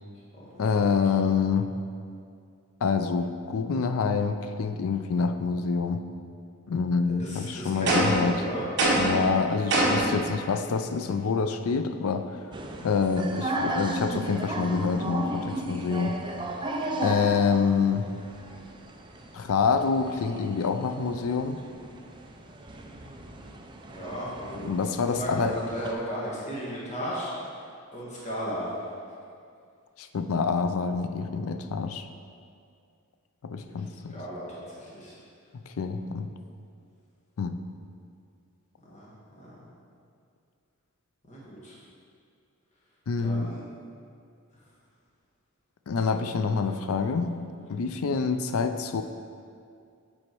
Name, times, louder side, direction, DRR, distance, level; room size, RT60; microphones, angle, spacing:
voice 1, 0.6-1.7 2.8-6.0 6.7-8.4 9.0-12.4 12.8-16.2 17.0-18.1 19.3-21.6 24.6-25.5 30.0-32.1 33.4-34.2 35.7-36.3 37.4-37.6 43.1-43.5 45.9-47.3 47.7-49.0, left 5 dB, 65° left, 8 dB, 0.4 m, -26 dB
voice 2, 7.1-8.6 23.8-27.5 27.9-28.7 33.7-33.8 34.1-35.2 38.8-39.7 41.3-41.8 43.2-43.6 46.3-46.5, equal, 30° left, -7 dB, 1.5 m, -36 dB
sound 1, 7.9-8.3 8.8-9.2 9.7-10.1, right 1 dB, 55° right, 1.3 m, -22 dB
sound 2, 12.5-25.9, right 1 dB, 20° right, 0.4 m, -36 dB
7.7 x 4.2 x 4.6 m, 2.3 s
head